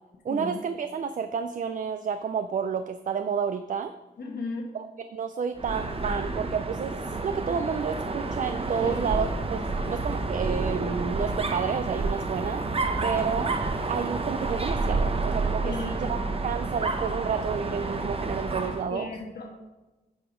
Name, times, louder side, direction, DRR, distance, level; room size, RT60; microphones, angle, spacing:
voice 1, 0.2-3.9 4.7-9.6 9.9-12.6 13.0-13.6 13.9-19.1, right 6 dB, 50° right, 10 dB, 0.4 m, -30 dB
voice 2, 4.2-4.7 8.8-9.0 9.8-10.0 15.6-16.6 18.9-19.5, left 3 dB, 70° left, 0 dB, 1.3 m, -36 dB
Dog, 5.6-18.9, right 3 dB, 35° right, 0.8 m, -29 dB
9.0 x 4.9 x 5.0 m, 1.1 s
wide cardioid pair, 110°, 17 cm